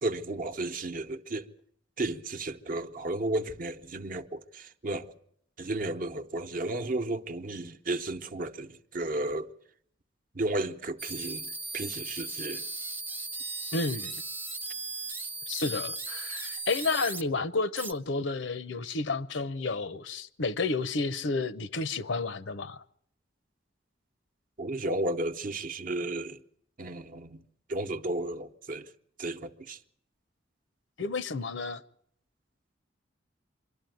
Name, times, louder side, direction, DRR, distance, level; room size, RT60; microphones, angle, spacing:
voice 1, 0.0-1.5 2.0-5.1 5.6-9.5 10.3-12.7 24.6-26.4 26.8-28.9 29.2-29.8, right 2 dB, 45° right, 0.9 m, -33 dB
sound 1, 11.0-17.2 17.7-17.9, right 3 dB, 10° right, 0.7 m, -37 dB
voice 2, 13.7-14.2 15.5-22.8 31.0-31.8, left 3 dB, 80° left, 0.8 m, -31 dB
24.5 x 12.5 x 9.2 m
head